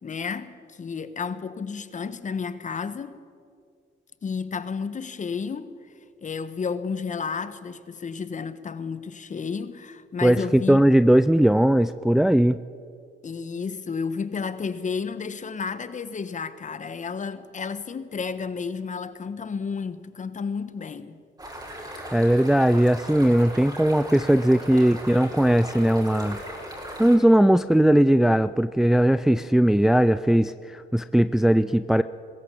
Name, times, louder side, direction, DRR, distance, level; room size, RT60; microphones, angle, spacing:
voice 1, 0.0-3.1 4.2-5.7 6.2-10.8 13.2-21.2, left 5 dB, 40° left, 1.3 m, -32 dB
voice 2, 10.2-12.6 22.1-26.4 27.0-32.0, right 1 dB, ahead, 0.4 m, -19 dB
sound 1, 21.4-27.2, equal, 20° right, 5.8 m, -38 dB
21.0 x 16.0 x 8.5 m
cardioid pair, 90°, 20 cm